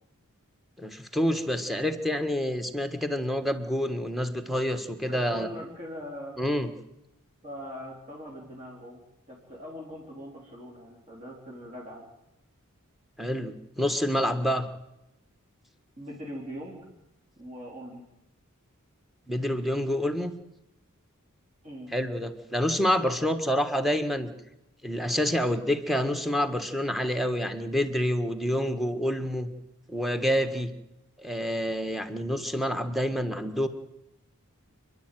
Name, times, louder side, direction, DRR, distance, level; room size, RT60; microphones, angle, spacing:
voice 1, 0.8-5.5 6.4-6.7 13.2-14.7 19.3-20.3 21.9-24.3 24.8-29.5 29.9-30.7 31.2-33.7, equal, ahead, 8 dB, 1.5 m, -27 dB
voice 2, 5.1-6.4 7.4-9.0 9.3-12.1 16.0-16.9 17.4-18.0 21.6-21.9, equal, 30° right, -3 dB, 3.8 m, -41 dB
28.0 x 11.0 x 9.2 m, 0.89 s
head